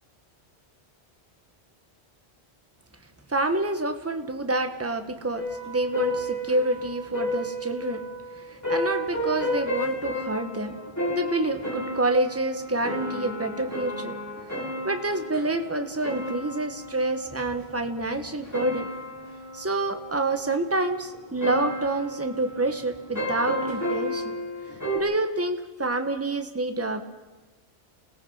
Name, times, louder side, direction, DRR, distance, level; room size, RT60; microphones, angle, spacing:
voice 1, 3.3-8.0 8.3-10.7 11.1-14.2 14.8-18.9 19.5-24.3 24.9-27.0, right 2 dB, 15° right, 7 dB, 1.4 m, -27 dB
sound 1, 5.3-25.0, left 1 dB, 15° left, 6.9 m, -33 dB
30.0 x 18.5 x 5.7 m, 1.2 s
omnidirectional pair, 1.1 m